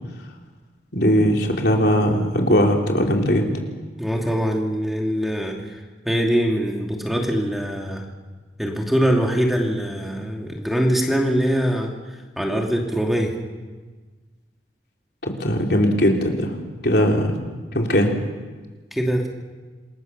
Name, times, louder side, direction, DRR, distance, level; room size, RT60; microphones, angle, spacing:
voice 1, 0.9-3.5 15.2-16.5 16.8-17.3 17.7-18.1, equal, 65° left, 1 dB, 3.6 m, -19 dB
voice 2, 4.0-5.8 6.0-8.0 8.6-12.0 12.4-13.3 18.9-19.3, equal, ahead, 0 dB, 2.5 m, -22 dB
27.5 x 22.0 x 6.8 m, 1.3 s
head